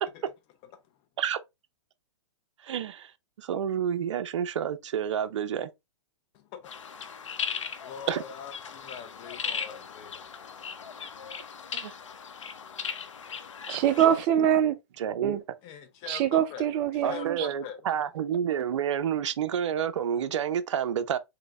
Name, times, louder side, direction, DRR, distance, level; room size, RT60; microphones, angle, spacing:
voice 1, 2.6-3.1 3.4-5.7 8.1-8.2 11.7-11.9 13.7-13.8 15.0-15.3 17.0-21.2, right 8 dB, 75° right, 0.6 m, -29 dB
voice 2, 6.3-6.7 6.9-7.2 7.7-10.2 15.6-16.7 17.0-17.8, left 8 dB, 40° left, 1.0 m, -43 dB
sound 1, 6.6-14.3, left 6 dB, 90° left, 0.7 m, -38 dB
voice 3, 13.7-14.7 15.2-15.4 16.1-17.5, right 10 dB, 35° right, 0.6 m, -24 dB
3.8 x 2.8 x 3.4 m
hypercardioid pair, 130°, 16 cm